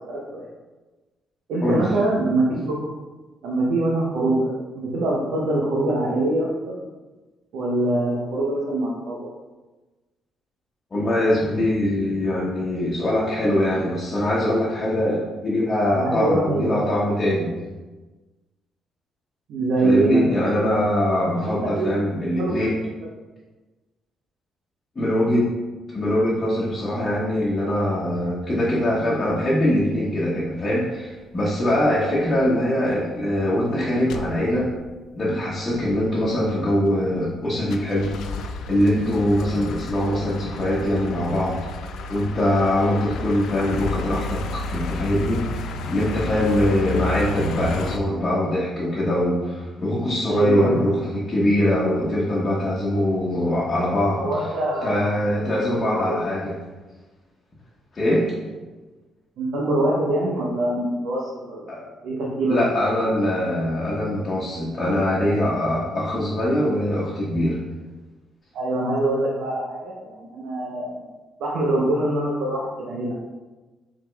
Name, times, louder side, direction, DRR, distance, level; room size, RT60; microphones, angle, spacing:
voice 1, 0.1-0.5 1.5-2.9 3.4-6.8 7.5-9.3 15.8-16.8 19.5-20.6 21.4-22.0 22.4-22.5 50.3-50.8 54.2-55.1 55.4-55.6 55.8-56.2 59.4-62.6 68.5-70.9 71.4-73.1, right 2 dB, 80° right, -4 dB, 0.7 m, -24 dB
voice 2, 10.9-17.5 19.8-22.7 25.0-25.5 25.9-34.7 35.1-38.2 38.6-41.6 42.1-54.2 54.8-56.5 57.9-58.3 61.7-61.8 62.5-67.6, left 1 dB, 35° left, -7 dB, 1.0 m, -22 dB
sound 1, 31.6-31.9 32.4-32.6 32.9-33.0 33.2-33.7 34.1-34.8 35.2-35.3 35.5-36.0 36.5-37.3 37.6-48.0, left 3 dB, 80° left, 0.3 m, -32 dB
4.7 x 3.5 x 2.3 m, 1.2 s
cardioid pair, 90°, 0 cm